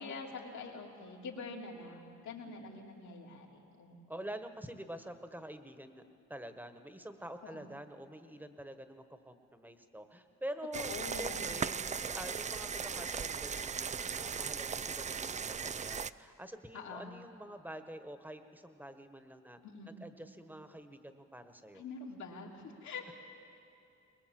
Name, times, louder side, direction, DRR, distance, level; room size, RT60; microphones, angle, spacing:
voice 1, 0.0-3.9 7.4-7.7 10.7-11.6 16.7-17.1 19.6-19.9 21.7-23.1, left 4 dB, 70° left, -1 dB, 3.4 m, -45 dB
voice 2, 4.1-6.0 6.3-11.8 12.0-19.6 19.9-21.8, right 1 dB, 5° right, 8 dB, 1.4 m, -47 dB
sound 1, 10.7-16.1, right 6 dB, 25° right, 0.4 m, -37 dB
23.0 x 20.5 x 7.7 m, 2.6 s
cardioid pair, 90°, 30 cm